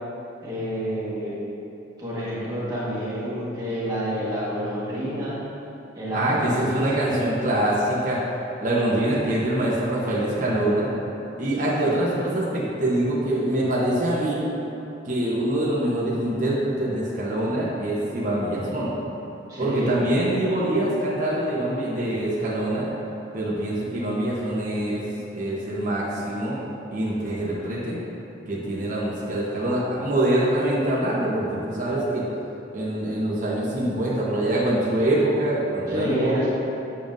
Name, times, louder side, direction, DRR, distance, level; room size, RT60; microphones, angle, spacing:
voice 1, 0.4-1.4 2.0-5.4 5.9-6.8 11.8-12.0 17.1-17.2 19.5-20.0 35.9-36.5, equal, 20° right, -10 dB, 1.4 m, -28 dB
voice 2, 6.1-8.2 8.6-10.9 11.4-14.4 15.0-18.9 19.6-22.9 23.3-26.6 26.9-28.0 28.5-32.2 32.7-36.4, right 1 dB, 40° right, -7 dB, 1.0 m, -24 dB
7.1 x 6.9 x 2.6 m, 3.0 s
head